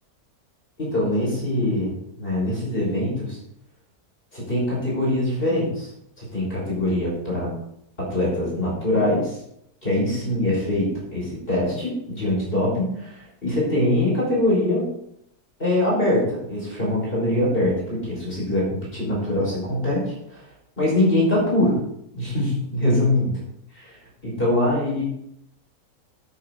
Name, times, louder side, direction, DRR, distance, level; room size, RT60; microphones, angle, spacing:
voice 1, 0.8-3.4 4.3-5.9 6.2-7.5 8.0-9.4 9.8-14.9 15.6-20.5 20.8-21.8 22.2-23.3 23.7-24.0 24.2-25.0, left 1 dB, 35° left, -4 dB, 5.6 m, -23 dB
12.5 x 9.7 x 4.1 m, 0.74 s
omnidirectional pair, 1.6 m